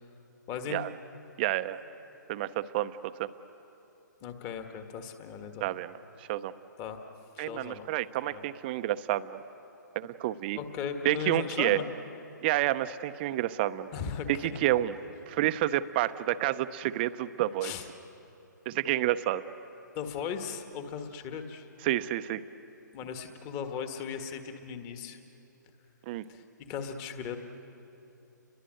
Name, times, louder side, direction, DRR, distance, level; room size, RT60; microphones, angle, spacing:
voice 1, 0.5-0.8 4.2-5.6 6.8-7.0 7.3-7.9 8.3-8.4 10.5-11.9 13.9-14.5 17.6-17.9 19.9-21.7 22.9-25.2 26.3-27.4, left 7 dB, 25° left, 6 dB, 1.7 m, -37 dB
voice 2, 1.4-1.8 2.3-3.3 5.6-6.5 7.4-9.4 9.9-10.6 11.0-11.8 12.4-13.9 14.3-14.9 15.3-17.7 18.7-19.4 21.8-22.4 26.1-26.3, right 14 dB, 30° right, 12 dB, 0.7 m, -29 dB
30.0 x 22.5 x 7.8 m, 2.9 s
hypercardioid pair, 145°, 10 cm